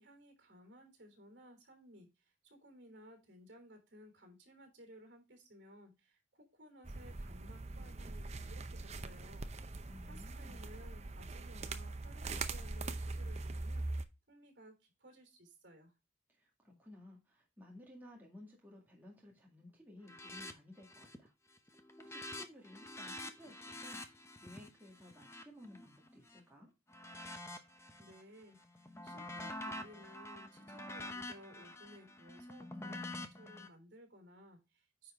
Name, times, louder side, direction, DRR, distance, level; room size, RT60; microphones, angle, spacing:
voice 1, 0.0-9.5 10.0-15.9 28.0-35.1, equal, 60° right, 3.5 m, -58 dB
sound 1, 6.8-14.0, right 3 dB, 35° right, 0.7 m, -42 dB
voice 2, 9.8-10.7 16.3-21.3 22.0-26.7, left 1 dB, 10° right, 1.9 m, -56 dB
sound 2, 20.0-20.5 20.8-21.3 21.6-26.4 26.9-28.2 28.6-33.7, left 1 dB, 15° left, 0.9 m, -47 dB
9.8 x 4.5 x 3.6 m
head